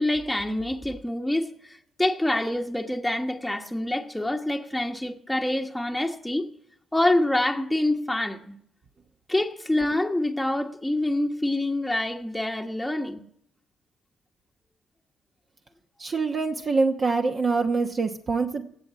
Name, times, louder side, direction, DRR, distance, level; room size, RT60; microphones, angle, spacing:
voice 1, 0.0-6.5 6.9-8.5 9.3-13.2, left 1 dB, 5° left, 1.1 m, -26 dB
voice 2, 16.0-18.6, right 4 dB, 40° right, 1.0 m, -25 dB
17.5 x 7.4 x 8.3 m
cardioid pair, 90°, 0 cm